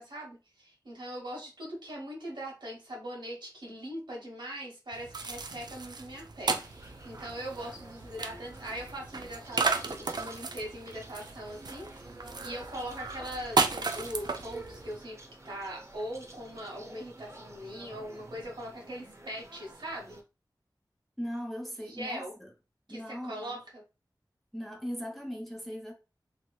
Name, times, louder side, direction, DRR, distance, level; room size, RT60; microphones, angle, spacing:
voice 1, 0.0-15.2 15.4-20.2 21.8-22.3 22.9-23.8, equal, 90° right, 1.3 m, -41 dB
sound 1, 4.9-15.0, right 4 dB, 65° right, 0.4 m, -34 dB
sound 2, 6.5-20.2, right 2 dB, 40° right, 0.7 m, -50 dB
voice 2, 21.2-22.5 22.9-23.6 24.5-25.9, equal, ahead, 0.9 m, -39 dB
2.9 x 2.8 x 2.3 m
wide cardioid pair, 60°, 8 cm